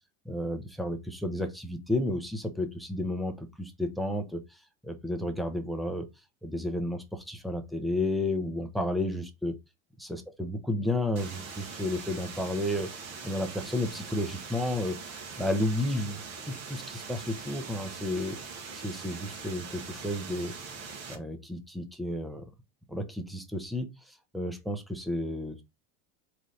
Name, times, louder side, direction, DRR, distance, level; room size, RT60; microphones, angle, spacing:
voice 1, 0.2-4.4 4.8-6.1 6.4-9.5 10.0-12.9 13.2-15.0 15.4-18.4 18.7-20.5 21.1-22.5 22.9-25.6, left 1 dB, ahead, 0.6 m, -32 dB
sound 1, 11.2-21.2, right 5 dB, 50° right, 1.3 m, -42 dB
4.1 x 3.2 x 3.8 m
supercardioid pair, 140°, 33 cm